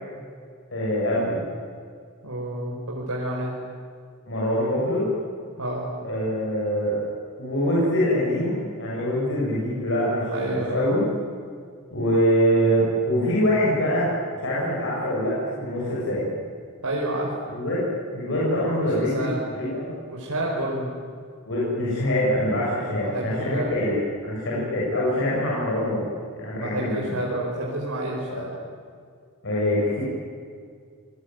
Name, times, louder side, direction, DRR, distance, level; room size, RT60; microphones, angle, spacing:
voice 1, 0.7-1.4 4.3-5.1 6.0-7.0 7.4-11.0 11.9-14.1 14.4-16.3 17.5-19.9 21.5-24.0 24.2-26.0 26.3-27.2 28.3-28.4 29.4-30.0, equal, 60° left, -6 dB, 7.6 m, -24 dB
voice 2, 2.2-3.5 5.6-5.9 10.3-10.8 16.8-17.3 18.9-19.5 20.1-20.9 23.0-23.7 26.5-28.5, right 1 dB, 85° right, -3 dB, 4.9 m, -29 dB
28.5 x 21.5 x 9.3 m, 2.1 s
head